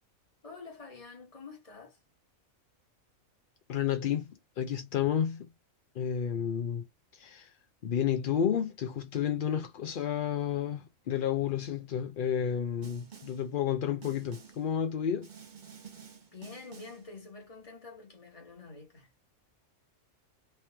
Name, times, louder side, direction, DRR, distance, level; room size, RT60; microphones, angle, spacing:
voice 1, 0.4-2.0 16.3-19.1, left 4 dB, 25° left, 1.2 m, -48 dB
voice 2, 3.7-5.5 5.9-6.8 7.1-7.5 7.8-15.3, left 9 dB, 65° left, 0.5 m, -31 dB
Snare drum, 12.8-13.5 14.0-14.7 15.2-17.1, right 7 dB, 40° right, 0.8 m, -51 dB
3.3 x 3.0 x 3.2 m
omnidirectional pair, 1.5 m